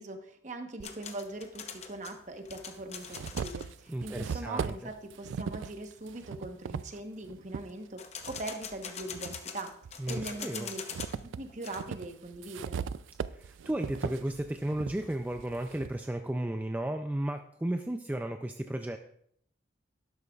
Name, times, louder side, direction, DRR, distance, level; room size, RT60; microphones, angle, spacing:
voice 1, 0.0-9.7 10.1-10.8 11.1-12.8, right 2 dB, 40° right, 6 dB, 1.0 m, -41 dB
sound 1, 0.8-3.7 8.0-11.2 11.5-11.8, left 7 dB, 35° left, 0.7 m, -43 dB
sound 2, 0.8-0.9 2.0-2.1 2.5-7.7 8.2-9.4 9.8-16.0, right 6 dB, 85° right, 0.3 m, -39 dB
voice 2, 3.9-4.7 10.0-10.7 13.3-19.0, right 1 dB, 10° right, 6 dB, 0.3 m, -34 dB
12.0 x 12.0 x 2.4 m, 0.67 s
head